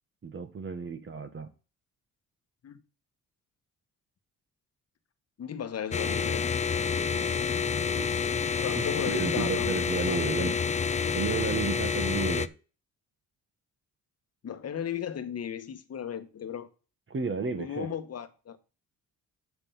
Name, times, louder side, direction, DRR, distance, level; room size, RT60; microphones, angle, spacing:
voice 1, 0.2-1.5 7.9-8.0 8.8-10.5 11.1-12.5 17.1-17.9, right 5 dB, 40° right, 1.4 m, -32 dB
voice 2, 5.4-6.4 8.6-10.5 10.9-11.1 14.4-16.7 17.6-18.6, left 8 dB, 50° left, 1.3 m, -36 dB
sound 1, 5.9-12.5, left 6 dB, 20° left, 0.4 m, -28 dB
7.9 x 6.0 x 5.6 m
cardioid pair, 100°, 33 cm